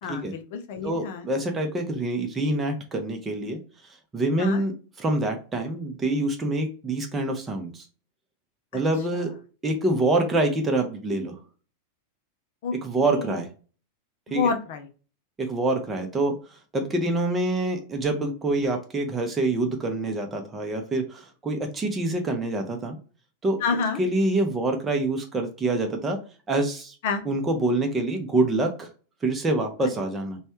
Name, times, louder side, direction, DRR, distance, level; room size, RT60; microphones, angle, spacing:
voice 1, 0.0-1.3 4.4-4.6 8.7-8.8 12.6-13.4 14.3-14.9 23.6-24.0 27.0-27.2, left 5 dB, 50° left, 7 dB, 0.5 m, -28 dB
voice 2, 0.8-3.6 4.1-7.8 8.7-9.3 9.6-11.3 12.7-13.5 14.3-14.5 15.4-16.4 16.7-23.0 23.4-23.6 24.0-26.2 26.5-27.0 27.2-28.9 29.2-30.4, right 2 dB, 15° right, 3 dB, 0.7 m, -26 dB
3.1 x 2.3 x 2.9 m, 0.37 s
figure-of-eight pair, 90°, 0 cm